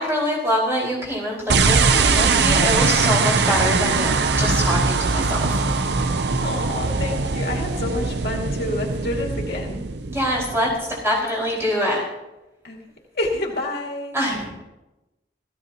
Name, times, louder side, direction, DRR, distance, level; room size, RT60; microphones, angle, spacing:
voice 1, 0.0-5.6 10.1-12.0 14.1-14.5, equal, 15° right, -4 dB, 5.0 m, -24 dB
sound 1, 1.5-10.9, right 4 dB, 75° right, 0.7 m, -21 dB
voice 2, 6.4-9.8 12.6-12.8 13.1-14.2, left 2 dB, 60° left, -1 dB, 2.3 m, -28 dB
17.5 x 15.0 x 2.9 m, 0.99 s
head